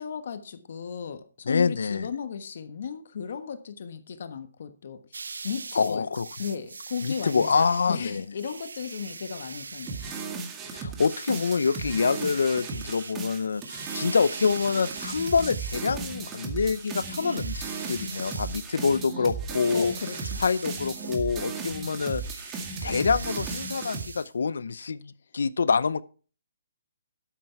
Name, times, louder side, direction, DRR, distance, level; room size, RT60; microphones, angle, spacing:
voice 1, 0.0-5.2 5.4-6.1 6.4-10.2 19.7-20.4, left 6 dB, 60° left, 1.3 m, -35 dB
voice 2, 1.5-2.1 5.7-6.3 7.0-8.2 10.7-19.9 20.4-22.2 22.8-26.0, left 5 dB, 75° left, 0.6 m, -26 dB
sound 1, 5.1-10.3 11.0-15.9 16.7-18.7 19.4-21.3 21.9-24.3, right 4 dB, 90° right, 0.5 m, -41 dB
sound 2, 9.9-24.0, right 4 dB, 20° right, 1.9 m, -36 dB
12.0 x 8.0 x 4.6 m
hypercardioid pair, 155°, 0 cm